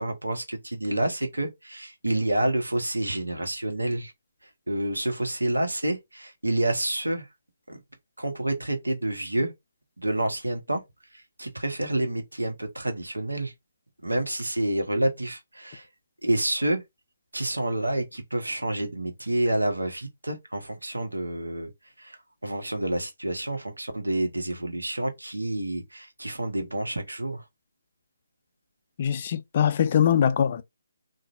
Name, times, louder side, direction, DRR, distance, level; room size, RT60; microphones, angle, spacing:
voice 1, 0.0-4.1 4.7-7.3 7.7-7.8 8.2-9.5 10.0-10.8 11.1-13.5 14.0-15.9 16.2-16.8 17.3-21.7 22.0-27.4, right 1 dB, 90° right, 0.7 m, -28 dB
voice 2, 29.0-30.6, left 8 dB, 40° left, 0.3 m, -22 dB
2.5 x 2.0 x 2.4 m
figure-of-eight pair, 145°, 0 cm